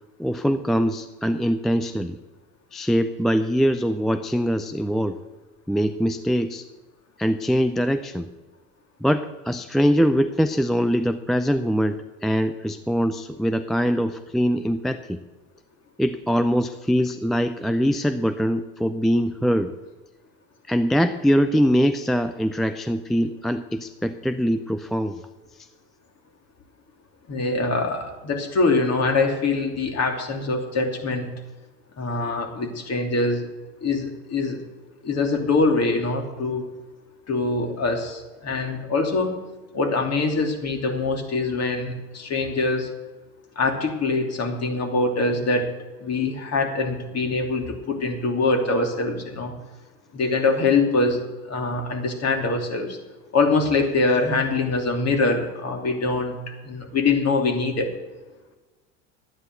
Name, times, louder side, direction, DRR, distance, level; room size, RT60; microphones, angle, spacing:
voice 1, 0.2-2.2 2.7-5.2 5.7-6.6 7.2-8.3 9.0-15.2 16.0-19.7 20.7-25.2, equal, ahead, 10 dB, 0.3 m, -23 dB
voice 2, 27.3-31.3 32.0-33.5 33.8-34.6 35.0-36.6 37.3-39.4 39.7-42.9 43.6-45.7 46.0-49.5 50.1-53.0 53.3-57.9, left 3 dB, 35° left, 3 dB, 3.0 m, -24 dB
11.5 x 9.5 x 8.2 m, 1.2 s
hypercardioid pair, 90°, 43 cm